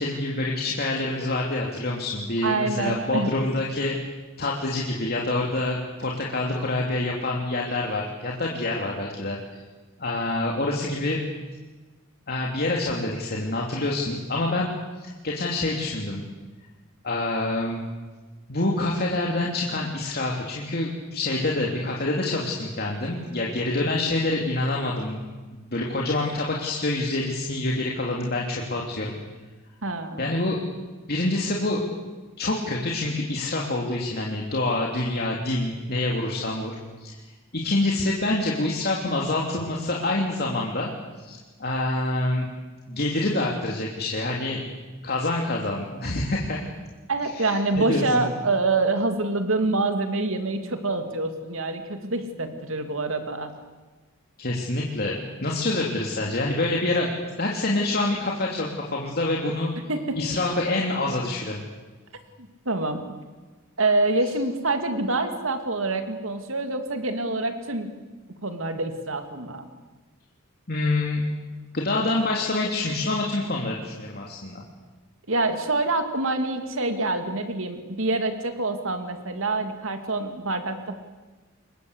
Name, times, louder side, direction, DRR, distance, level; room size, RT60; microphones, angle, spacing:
voice 1, 0.0-4.0 4.4-9.6 10.0-11.2 12.3-14.7 15.0-16.2 17.0-17.8 18.5-25.2 25.5-29.2 30.2-30.6 31.1-31.8 32.4-37.1 37.5-42.5 42.9-44.6 45.0-46.7 47.3-48.3 54.4-59.7 60.2-61.6 70.7-71.2 71.7-74.6, left 2 dB, 45° left, -1 dB, 3.0 m, -26 dB
voice 2, 2.4-3.3 29.8-30.2 47.1-53.5 59.9-60.2 62.6-63.2 63.8-67.9 68.4-69.7 75.3-81.0, right 2 dB, 65° right, 7 dB, 2.8 m, -26 dB
28.0 x 22.5 x 8.3 m, 1.3 s
head